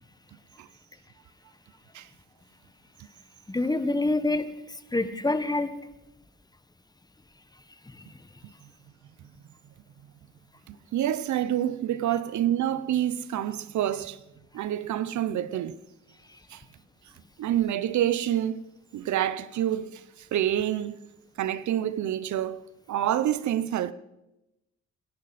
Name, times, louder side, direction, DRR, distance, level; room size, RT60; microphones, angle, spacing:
voice 1, 3.5-5.7 7.9-8.0, left 2 dB, 15° left, 1.4 m, -27 dB
voice 2, 10.7-14.2 14.5-15.8 16.5-16.6 17.4-18.6 18.9-21.0 21.4-23.9, right 11 dB, 70° right, 0.8 m, -27 dB
28.0 x 11.5 x 4.3 m
cardioid pair, 90°, 30 cm